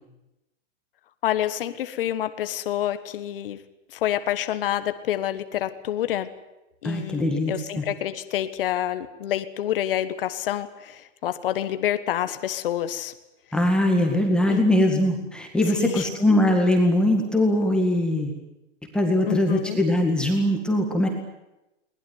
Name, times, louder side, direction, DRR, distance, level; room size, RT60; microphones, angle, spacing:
voice 1, 1.2-3.6 3.9-6.3 6.8-13.1 14.5-14.9 15.7-16.1 19.2-19.8, left 12 dB, 50° left, 11 dB, 1.5 m, -28 dB
voice 2, 6.8-7.8 13.5-18.3 18.9-21.1, left 1 dB, ahead, 1 dB, 2.0 m, -21 dB
22.0 x 20.0 x 9.6 m, 0.95 s
hypercardioid pair, 170°, 36 cm